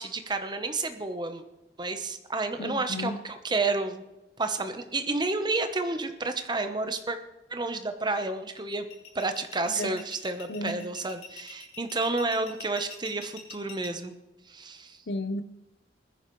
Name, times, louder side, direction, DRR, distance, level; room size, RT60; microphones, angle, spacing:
voice 1, 0.0-1.4 1.8-4.0 4.4-7.2 7.5-8.9 9.1-14.2 14.5-15.0, right 3 dB, 25° right, 1.0 m, -30 dB
voice 2, 2.6-3.2 9.8-10.0 10.5-10.8 15.1-15.4, left 1 dB, 75° left, 0.8 m, -33 dB
sound 1, 8.6-13.9, left 6 dB, 40° left, 3.3 m, -45 dB
20.5 x 10.0 x 3.2 m
head